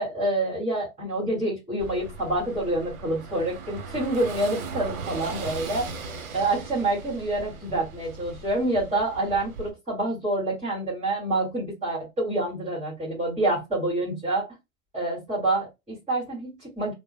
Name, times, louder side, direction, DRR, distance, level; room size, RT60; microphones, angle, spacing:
voice 1, 0.0-5.9 6.3-14.4 14.9-16.9, right 2 dB, 15° right, -7 dB, 2.4 m, -27 dB
Car passing by / Engine, 1.8-9.7, right 4 dB, 80° right, 1.2 m, -38 dB
3.8 x 3.2 x 2.2 m, 0.23 s
hypercardioid pair, 120°, 42 cm